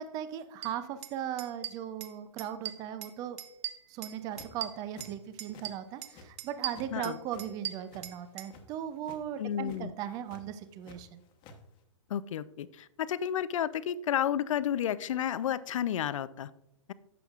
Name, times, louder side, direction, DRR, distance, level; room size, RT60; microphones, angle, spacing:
voice 1, 0.0-3.4 3.9-11.2, right 10 dB, 20° right, 12 dB, 0.5 m, -38 dB
sound 1, 0.6-0.7 1.0-1.1 1.4-2.1 2.4-3.1 3.4-5.1 5.4-6.1 6.4-8.5, right 11 dB, 55° right, 0.8 m, -39 dB
sound 2, 4.1-4.6 4.9-5.7 5.9-6.9 7.2-8.6 9.0-9.2 9.5-9.8 10.3-11.0 11.2-11.6, left 3 dB, 30° left, 1.1 m, -52 dB
voice 2, 9.4-9.9 12.1-16.5, left 10 dB, 70° left, 16 dB, 0.5 m, -31 dB
11.5 x 7.8 x 2.4 m, 0.84 s
hypercardioid pair, 145°, 17 cm